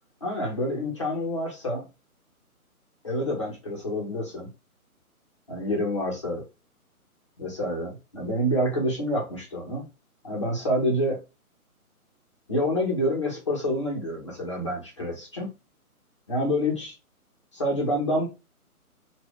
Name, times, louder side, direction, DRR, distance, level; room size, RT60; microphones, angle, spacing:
voice 1, 0.2-1.8 3.0-4.5 5.5-6.4 7.4-9.8 10.2-11.2 12.5-15.5 16.3-16.9 17.5-18.3, equal, 20° left, -2 dB, 0.6 m, -27 dB
3.1 x 2.2 x 3.2 m, 0.27 s
hypercardioid pair, 155°, 44 cm